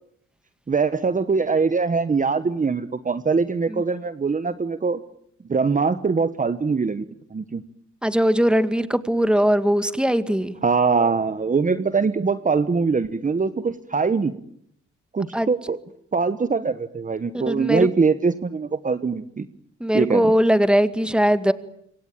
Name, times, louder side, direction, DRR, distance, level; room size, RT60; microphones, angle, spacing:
voice 1, 0.7-5.0 5.5-7.1 7.3-7.6 10.6-14.3 15.1-15.8 16.1-19.5 19.9-20.3, right 4 dB, 25° right, 12 dB, 1.3 m, -22 dB
voice 2, 8.0-10.6 15.3-15.5 17.3-17.9 19.8-21.5, equal, 5° right, 11 dB, 2.1 m, -20 dB
27.0 x 24.0 x 9.1 m, 0.71 s
cardioid pair, 90°, 30 cm